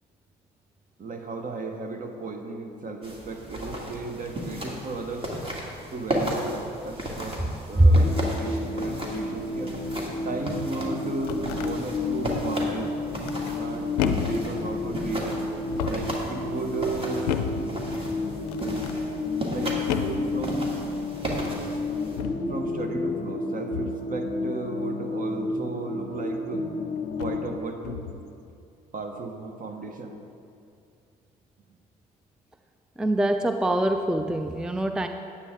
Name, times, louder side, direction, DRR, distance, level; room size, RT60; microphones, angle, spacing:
voice 1, 1.0-5.3 5.9-6.6 6.8-7.4 7.7-9.8 10.2-12.9 13.6-15.4 15.8-17.4 19.5-20.7 22.5-26.6 27.2-28.0 28.9-30.2, right 3 dB, 45° right, 5 dB, 1.2 m, -34 dB
sound 1, 3.0-22.2, right 1 dB, 25° right, 2.0 m, -35 dB
sound 2, 8.0-27.6, left 2 dB, 40° left, 0.7 m, -31 dB
sound 3, 11.1-11.7 13.2-13.6 14.0-14.5 15.6-16.2 17.3-17.7 18.5-19.0 19.9-20.3 21.2-21.6 22.2-22.5 23.7-24.0 26.1-26.2 27.1-27.4 27.8-28.2, left 9 dB, 85° left, 0.5 m, -32 dB
voice 2, 33.0-35.1, right 1 dB, 5° right, 7 dB, 0.4 m, -22 dB
9.6 x 8.5 x 3.6 m, 2.5 s
hypercardioid pair, 55°, 20 cm